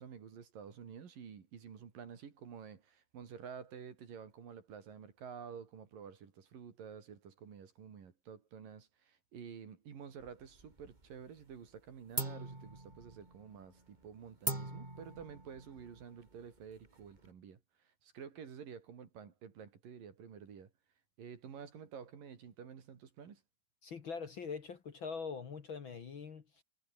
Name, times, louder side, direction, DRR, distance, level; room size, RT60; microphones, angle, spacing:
voice 1, 0.0-20.7 21.2-23.4, right 7 dB, 50° right, 4.4 m, -50 dB
sound 1, 10.2-11.1 11.4-11.8 12.1-17.3, right 2 dB, 10° right, 2.8 m, -43 dB
voice 2, 23.8-26.6, left 5 dB, 60° left, 1.2 m, -43 dB
omnidirectional pair, 5.2 m